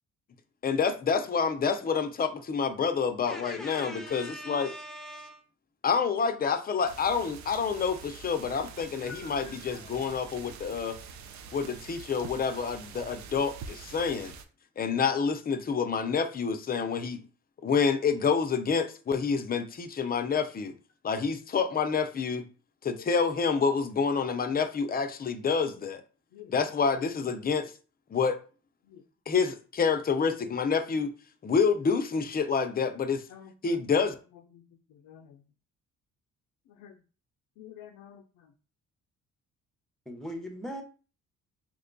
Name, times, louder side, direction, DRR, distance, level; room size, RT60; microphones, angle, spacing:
voice 1, 0.6-4.7 5.8-11.0 11.5-14.3 14.8-17.2 17.6-20.7 21.0-22.4 22.8-26.0 26.5-27.7 28.1-28.4 29.3-31.1 31.4-33.2 33.6-34.1, left 5 dB, 30° left, 0.5 m, -28 dB
voice 2, 3.3-5.4 40.1-40.8, equal, ahead, 0.7 m, -40 dB
sound 1, 6.8-14.4, right 6 dB, 70° right, 0.5 m, -46 dB
voice 3, 9.0-9.9 23.0-23.1 25.8-25.9 26.3-26.5 26.9-27.1 28.8-29.0 33.3-33.8 34.3-35.4 36.7-37.0 37.6-38.5, left 8 dB, 80° left, 0.5 m, -50 dB
3.0 x 2.2 x 3.8 m
cardioid pair, 90°, 30 cm